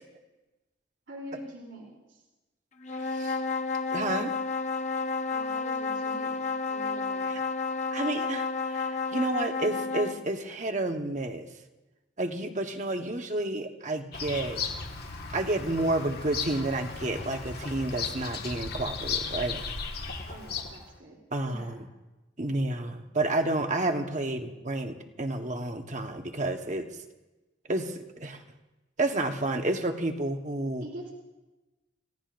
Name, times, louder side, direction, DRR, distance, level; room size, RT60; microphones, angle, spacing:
voice 1, 1.1-2.2 5.3-7.3 20.2-21.2 21.4-21.7 30.8-31.1, right 1 dB, 65° right, -2 dB, 3.3 m, -44 dB
sound 1, 2.8-10.2, left 4 dB, 35° left, 0.9 m, -31 dB
voice 2, 2.9-3.4 3.9-4.3 7.3-7.4 7.9-11.5 12.2-14.6 15.3-19.6 21.3-21.9 22.4-26.9 27.7-28.4 29.0-30.8, right 2 dB, 40° right, 5 dB, 1.2 m, -30 dB
Bird vocalization bird call bird song, 14.1-20.9, left 5 dB, 50° left, 1.7 m, -36 dB
29.5 x 16.5 x 2.6 m, 1.1 s
head